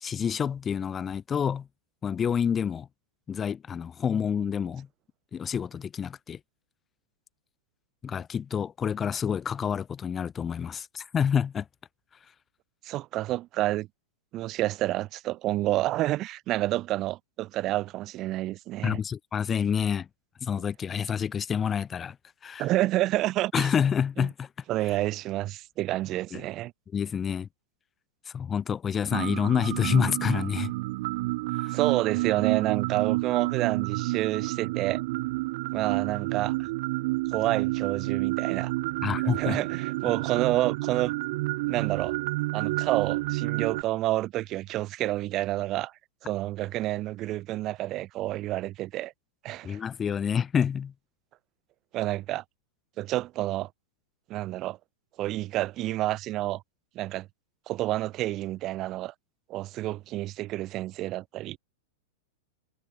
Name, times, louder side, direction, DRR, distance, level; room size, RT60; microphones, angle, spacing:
voice 1, 0.0-1.7 2.0-2.9 3.3-4.9 5.3-6.4 8.0-11.7 18.8-20.1 20.4-22.2 22.4-22.7 23.5-24.5 24.9-25.0 26.3-26.4 26.9-27.5 28.2-30.7 31.5-31.8 39.0-39.6 49.6-50.9, left 7 dB, 25° left, 1.1 m, -28 dB
voice 2, 12.8-13.9 14.3-19.0 22.6-23.7 24.2-24.3 24.7-26.7 31.7-35.0 35.7-36.7 37.3-38.7 39.2-41.1 41.7-42.1 42.5-45.9 46.2-49.1 49.4-49.8 51.9-52.4 53.0-53.7 54.3-54.8 55.2-56.6 56.9-57.3 57.7-59.1 59.5-61.6, right 16 dB, 40° right, 2.2 m, -29 dB
sound 1, 29.1-43.8, right 21 dB, 55° right, 0.8 m, -29 dB
hypercardioid pair, 100°, 0 cm